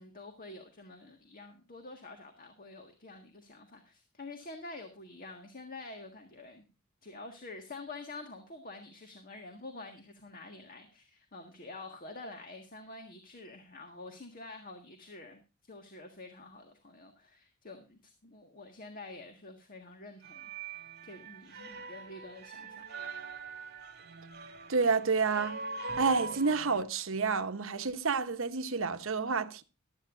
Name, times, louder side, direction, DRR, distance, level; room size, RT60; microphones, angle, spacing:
voice 1, 0.0-6.7 7.0-22.8, left 2 dB, 45° left, 1.7 m, -48 dB
sound 1, 20.2-26.8, right 3 dB, 50° right, 2.2 m, -42 dB
voice 2, 24.7-25.6 26.0-29.6, right 4 dB, 70° right, 1.0 m, -29 dB
15.0 x 12.5 x 2.6 m
head